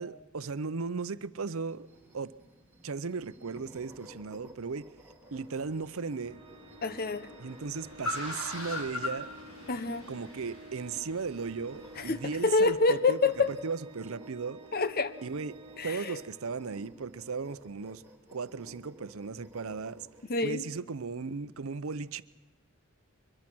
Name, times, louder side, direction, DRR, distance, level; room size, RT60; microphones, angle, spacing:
voice 1, 0.0-1.9 2.1-2.3 2.8-4.9 5.3-6.4 7.4-9.3 10.1-14.6 15.2-15.6 15.8-18.0 18.3-20.1 20.4-22.2, right 4 dB, 75° right, 0.7 m, -36 dB
sound 1, 1.6-20.3, equal, 10° right, 2.4 m, -55 dB
Car, 5.2-12.6, left 2 dB, 75° left, 4.9 m, -42 dB
Organ, 6.3-17.0, right 2 dB, 30° right, 2.7 m, -52 dB
voice 2, 6.8-7.3 9.7-10.0 12.0-13.5 14.7-15.1 15.8-16.2 20.3-20.6, left 3 dB, 45° left, 0.9 m, -27 dB
23.5 x 22.5 x 6.1 m
head